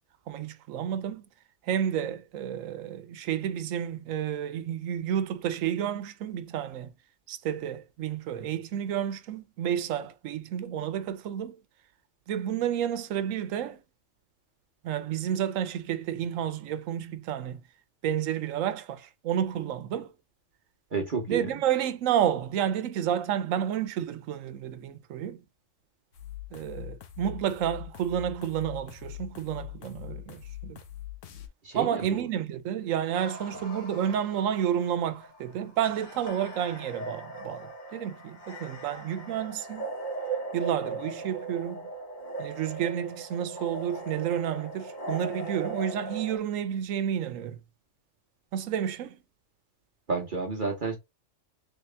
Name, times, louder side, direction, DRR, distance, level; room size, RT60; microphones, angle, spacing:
voice 1, 0.3-1.2 1.6-6.9 7.3-11.6 12.3-13.8 14.8-17.6 18.0-20.1 21.3-25.4 26.5-30.8 31.7-39.9 40.5-41.8 42.4-47.6 48.5-49.2, right 9 dB, 90° right, 1.0 m, -30 dB
voice 2, 20.9-21.6 31.6-32.3 50.1-51.0, right 4 dB, 45° right, 1.0 m, -31 dB
sound 1, 26.1-31.5, left 14 dB, 75° left, 1.1 m, -42 dB
sound 2, 33.1-46.4, right 3 dB, 40° left, 1.3 m, -39 dB
3.4 x 2.9 x 3.3 m
omnidirectional pair, 1.3 m